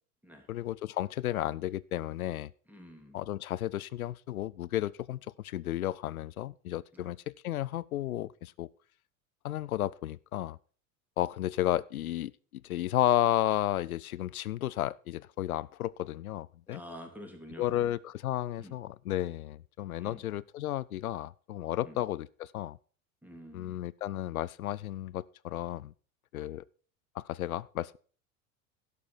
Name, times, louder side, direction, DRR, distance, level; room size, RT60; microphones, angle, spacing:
voice 1, 0.5-2.5 3.1-8.7 9.4-10.6 11.2-12.3 12.6-16.8 17.6-22.8 23.5-25.9 26.3-26.6 27.2-28.0, left 13 dB, 80° left, 0.5 m, -33 dB
voice 2, 2.7-3.2 6.9-7.1 16.7-17.9 18.6-18.8 20.0-20.2 21.8-22.0 23.2-23.8, equal, 5° right, 2.9 m, -48 dB
11.5 x 6.8 x 6.1 m
figure-of-eight pair, 80°, 43 cm